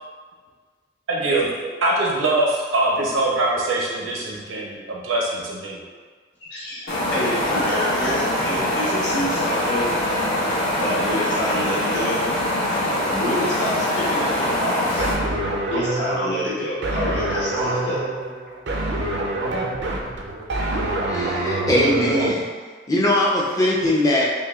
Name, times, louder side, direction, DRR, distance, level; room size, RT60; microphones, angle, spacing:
voice 1, 1.1-1.5 1.8-5.8, right 2 dB, 85° right, -3 dB, 0.8 m, -23 dB
voice 2, 6.5-9.9 10.8-12.3 13.1-15.1 15.7-18.0, left 1 dB, 55° left, -7 dB, 1.1 m, -27 dB
sound 1, 6.9-15.1, left 1 dB, 85° left, 1.2 m, -23 dB
sound 2, 15.0-22.3, right 2 dB, 55° right, 0.5 m, -26 dB
voice 3, 21.1-22.5 22.9-24.3, left 1 dB, 20° left, -4 dB, 0.5 m, -20 dB
5.4 x 2.3 x 2.3 m, 1.5 s
head